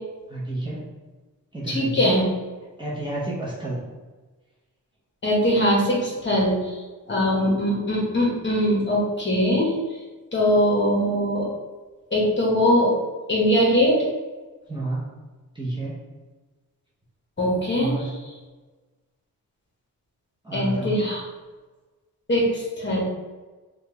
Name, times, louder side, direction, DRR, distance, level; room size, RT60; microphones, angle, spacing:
voice 1, 0.3-0.8 1.5-2.1 2.8-3.8 14.7-15.1 15.5-16.0 17.8-18.2 20.4-21.0, right 2 dB, 15° right, -7 dB, 0.7 m, -30 dB
voice 2, 1.7-2.3 5.2-6.8 7.1-9.7 10.3-11.5 12.1-13.0 13.3-14.0 17.4-18.1 20.5-21.2 22.3-23.0, equal, 35° left, -4 dB, 1.1 m, -21 dB
3.1 x 2.4 x 3.0 m, 1.3 s
cardioid pair, 100°, 34 cm